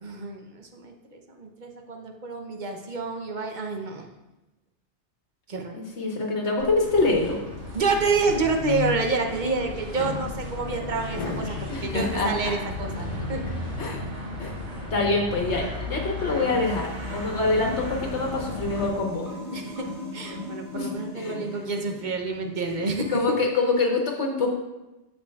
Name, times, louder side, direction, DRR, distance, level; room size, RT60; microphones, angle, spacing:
voice 1, 0.0-4.1 5.5-5.8 7.7-13.0 13.3-13.4 19.5-19.9 20.1-23.2, right 4 dB, 45° right, 3 dB, 0.9 m, -28 dB
voice 2, 5.7-7.4 11.7-12.5 13.8-14.0 14.4-14.5 14.9-19.3 20.7-20.9 21.1-21.4 22.7-22.8 23.1-24.5, left 3 dB, 75° left, 1 dB, 1.6 m, -25 dB
sound 1, 6.6-7.1 7.7-9.3 9.9-11.6, left 7 dB, 55° left, 1.1 m, -35 dB
sound 2, 6.8-18.9, left 2 dB, 85° right, 2.1 m, -35 dB
sound 3, 16.2-22.6, left 2 dB, 20° left, 2.9 m, -39 dB
14.0 x 5.1 x 2.4 m, 1.0 s
omnidirectional pair, 1.2 m